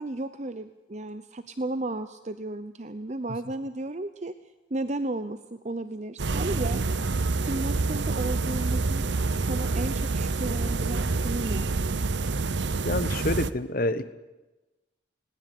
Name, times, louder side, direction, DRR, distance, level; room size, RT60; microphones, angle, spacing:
voice 1, 0.0-4.3 4.7-9.1 9.4-11.7, right 2 dB, 35° right, 12 dB, 0.7 m, -34 dB
sound 1, 6.2-13.5, right 3 dB, 65° right, 0.8 m, -27 dB
voice 2, 12.8-14.1, left 1 dB, 45° left, 13 dB, 1.1 m, -27 dB
20.0 x 19.0 x 8.5 m, 1.1 s
head